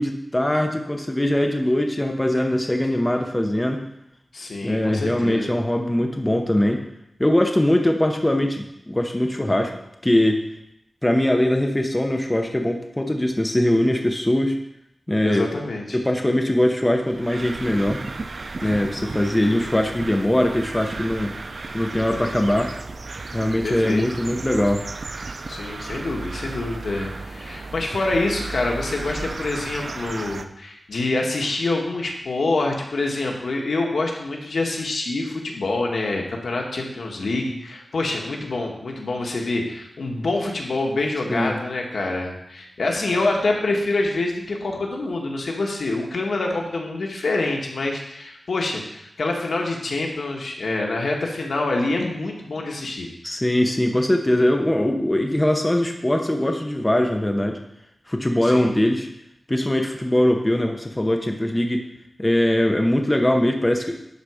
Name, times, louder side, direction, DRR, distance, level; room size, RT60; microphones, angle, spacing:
voice 1, 0.0-3.8 4.6-6.8 7.2-9.7 10.0-10.4 11.0-14.5 15.1-15.5 15.9-18.0 18.6-21.3 21.7-22.7 23.3-24.8 41.3-41.6 53.2-57.6 58.1-59.1 59.5-61.8 62.2-64.0, left 1 dB, 15° left, 3 dB, 0.9 m, -21 dB
voice 2, 4.3-5.5 15.2-16.0 18.6-18.8 23.6-24.0 25.5-53.1 58.4-58.7, left 2 dB, 85° left, 0 dB, 1.5 m, -26 dB
sound 1, 17.0-30.4, right 3 dB, 60° right, 0.5 m, -34 dB
11.5 x 4.1 x 5.0 m, 0.81 s
wide cardioid pair, 90°, 0 cm